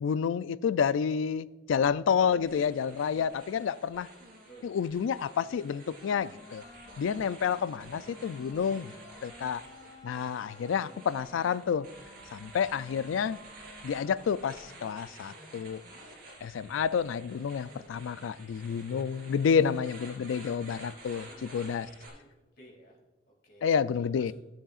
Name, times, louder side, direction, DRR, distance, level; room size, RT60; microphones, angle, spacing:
voice 1, 0.0-4.1 4.6-6.6 7.0-8.9 9.2-9.6 10.0-11.9 12.3-13.4 13.8-15.8 16.4-21.9 23.6-24.3, left 7 dB, 90° left, 17 dB, 0.3 m, -29 dB
sound 1, 2.4-22.1, right 2 dB, 50° right, 3.1 m, -51 dB
sound 2, 6.0-14.8, left 1 dB, 25° left, 1.8 m, -54 dB
voice 2, 21.2-21.6 22.0-22.3 22.5-23.0 23.3-24.3, right 1 dB, 55° left, -1 dB, 2.6 m, -56 dB
14.5 x 7.4 x 2.4 m, 1.2 s
head